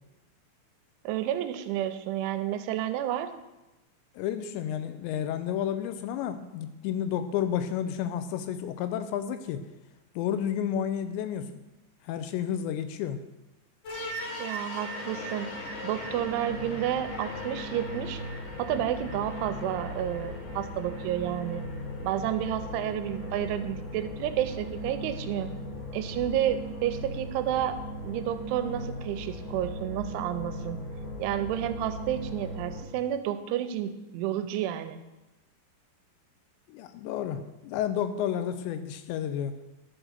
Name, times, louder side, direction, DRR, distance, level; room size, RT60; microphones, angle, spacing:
voice 1, 1.0-3.3 14.4-15.5 15.8-18.2 18.6-21.6 22.0-25.5 25.9-27.8 28.0-30.8 31.2-35.0, right 11 dB, 90° right, 9 dB, 3.1 m, -30 dB
voice 2, 4.2-9.6 10.2-11.6 12.0-13.2 36.7-39.6, left 9 dB, 80° left, 10 dB, 2.7 m, -31 dB
sound 1, 13.8-32.8, equal, 55° left, 3.0 m, -37 dB
12.5 x 6.3 x 6.5 m, 1.0 s
omnidirectional pair, 5.4 m